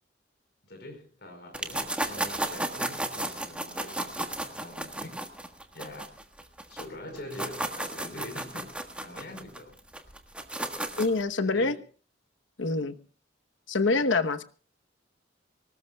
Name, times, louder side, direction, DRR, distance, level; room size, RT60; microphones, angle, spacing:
voice 1, 0.7-5.3 5.7-6.2 6.7-9.8 11.4-11.8 12.6-12.9 13.8-14.3, left 1 dB, 60° left, 4 dB, 5.0 m, -44 dB
sound 1, 1.5-6.8 7.2-11.2, right 1 dB, 5° right, 1.5 m, -34 dB
voice 2, 11.0-11.7 12.6-12.9 13.7-14.4, left 3 dB, 80° left, 10 dB, 1.0 m, -25 dB
24.0 x 19.5 x 2.3 m, 0.38 s
head